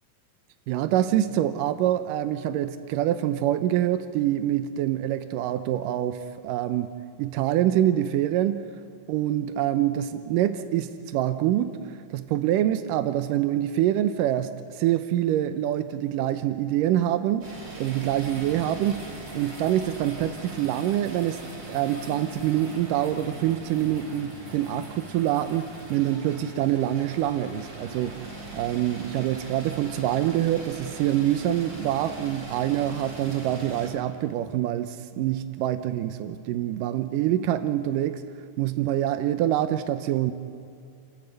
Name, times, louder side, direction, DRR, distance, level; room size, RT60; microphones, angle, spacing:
voice 1, 0.7-6.9 7.2-8.7 9.1-11.8 12.1-17.5 17.8-19.1 19.3-21.4 21.7-28.2 28.5-38.2 38.6-40.3, right 12 dB, 90° right, 11 dB, 2.4 m, -25 dB
sound 1, 17.4-33.9, right 2 dB, 35° right, 4.1 m, -41 dB
30.0 x 14.0 x 8.1 m, 2.5 s
omnidirectional pair, 3.7 m